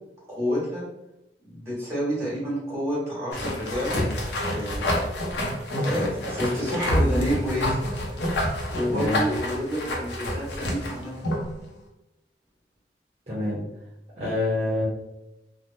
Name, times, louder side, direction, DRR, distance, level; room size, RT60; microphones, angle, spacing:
voice 1, 0.3-0.8 1.4-4.0 4.5-5.0 5.8-7.8 8.7-11.1, equal, 15° right, -6 dB, 1.3 m, -29 dB
sound 1, 3.3-11.5, left 1 dB, 80° left, 0.7 m, -27 dB
voice 2, 8.9-9.2 13.3-13.6 14.2-14.8, left 1 dB, 35° right, -9 dB, 0.7 m, -26 dB
3.1 x 2.1 x 2.6 m, 0.91 s
head